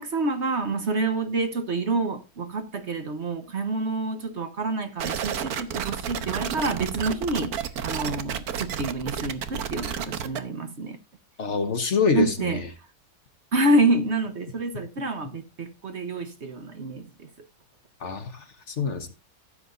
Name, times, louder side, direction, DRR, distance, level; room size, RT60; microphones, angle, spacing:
voice 1, 0.0-11.0 12.1-12.6 13.5-17.3, right 2 dB, 45° right, 1.3 m, -27 dB
sound 1, 5.0-10.4, right 8 dB, 70° right, 1.4 m, -31 dB
voice 2, 11.4-12.7 18.0-19.1, left 5 dB, 50° left, 1.5 m, -26 dB
15.0 x 7.6 x 2.6 m
omnidirectional pair, 1.7 m